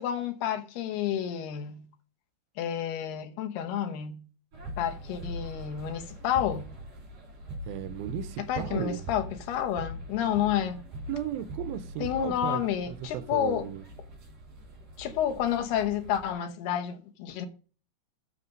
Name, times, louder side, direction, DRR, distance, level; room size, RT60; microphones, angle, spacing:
voice 1, 0.0-1.9 2.6-4.2 4.8-6.7 8.4-10.8 12.0-13.7 15.0-17.5, left 10 dB, 80° left, 3.1 m, -30 dB
sound 1, 4.5-16.3, equal, 45° right, 4.5 m, -42 dB
voice 2, 7.7-9.0 11.1-12.6 12.9-13.8, right 11 dB, 75° right, 2.5 m, -35 dB
9.2 x 7.0 x 5.1 m
omnidirectional pair, 4.6 m